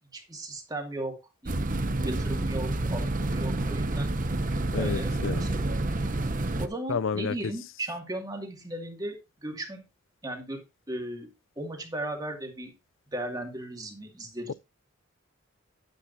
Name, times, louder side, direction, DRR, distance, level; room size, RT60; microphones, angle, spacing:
voice 1, 0.1-1.6 2.0-4.1 4.8-5.5 6.6-9.8 10.2-11.3 11.6-12.7 13.1-14.5, right 1 dB, 20° right, 2.3 m, -36 dB
sound 1, 1.5-6.7, right 2 dB, 40° right, 0.8 m, -29 dB
voice 2, 4.7-5.4 6.9-7.4, left 5 dB, 65° left, 0.4 m, -30 dB
11.5 x 9.3 x 2.7 m
head